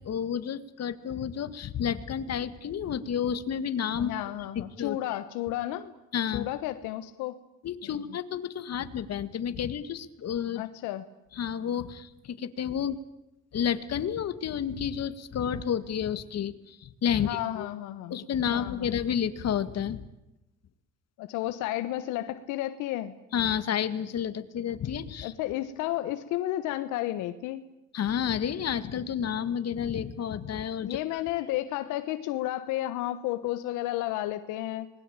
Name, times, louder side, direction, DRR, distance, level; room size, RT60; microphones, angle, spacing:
voice 1, 0.1-4.1 4.6-5.0 6.1-6.5 7.6-10.6 11.4-12.1 12.4-13.0 13.5-16.5 16.8-17.7 18.1-20.0 23.3-25.3 27.9-30.9, left 8 dB, 60° left, 12 dB, 2.0 m, -30 dB
voice 2, 4.0-5.9 6.3-7.4 7.8-8.2 10.5-11.0 17.2-18.2 18.5-19.0 21.2-23.1 25.2-27.7 30.8-34.9, left 14 dB, 90° left, 10 dB, 1.3 m, -32 dB
26.5 x 20.5 x 8.9 m, 0.92 s
supercardioid pair, 75°, 29 cm